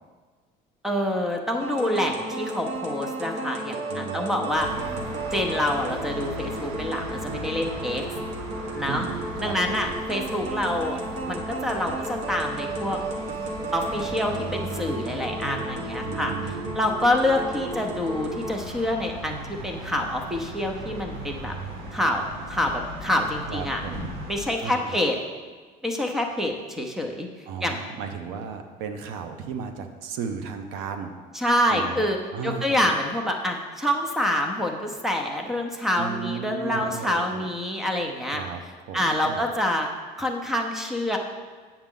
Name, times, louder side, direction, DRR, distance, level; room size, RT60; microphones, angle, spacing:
voice 1, 0.8-4.7 5.3-8.1 8.7-9.1 9.4-11.0 11.3-13.0 13.7-16.3 16.7-21.5 21.9-23.8 24.3-25.2 25.8-27.3 27.6-27.8 31.3-32.2 32.4-38.4 38.9-39.9 40.2-41.2, left 1 dB, ahead, 3 dB, 0.7 m, -26 dB
sound 1, 1.6-18.6, right 2 dB, 40° right, 1.0 m, -34 dB
voice 2, 3.9-5.1 8.9-9.9 16.0-16.8 23.4-24.1 24.6-25.0 27.5-31.1 31.7-32.0 32.3-32.9 36.0-37.9 38.3-38.6 38.9-39.5, right 6 dB, 90° right, 7 dB, 0.8 m, -35 dB
sound 2, 4.5-24.5, right 1 dB, 70° right, 1.7 m, -38 dB
8.8 x 7.1 x 3.8 m, 1.5 s
cardioid pair, 150°, 17 cm